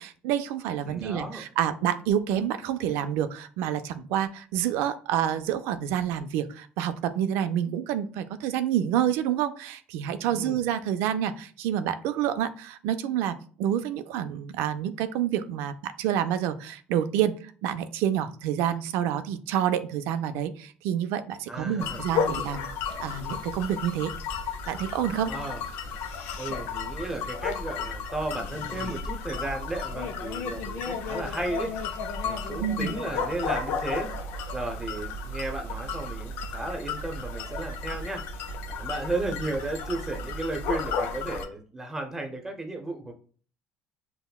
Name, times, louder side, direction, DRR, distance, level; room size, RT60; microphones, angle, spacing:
voice 1, 0.0-17.3 17.6-22.7 23.0-24.1 24.7-25.3 32.6-32.9, right 10 dB, 80° right, 11 dB, 0.4 m, -28 dB
voice 2, 0.9-1.4 10.3-10.6 21.5-22.0 25.3-25.6 26.4-31.7 32.2-34.1 34.5-38.2 38.7-43.1, right 2 dB, 10° right, 3 dB, 0.8 m, -34 dB
sound 1, 21.8-41.5, left 5 dB, 75° left, 0.5 m, -33 dB
5.5 x 2.1 x 2.3 m, 0.42 s
cardioid pair, 115°, 4 cm